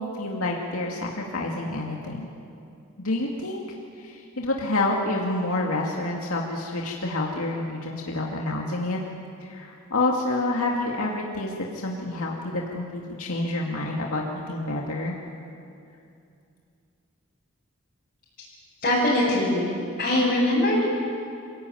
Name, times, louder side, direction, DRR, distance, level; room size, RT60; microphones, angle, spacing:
voice 1, 0.0-2.3 3.0-9.0 9.4-15.2, left 2 dB, 75° left, -1 dB, 2.3 m, -28 dB
voice 2, 18.8-19.7 20.0-20.8, left 1 dB, 40° left, -9 dB, 6.6 m, -22 dB
27.0 x 16.5 x 9.3 m, 2.5 s
head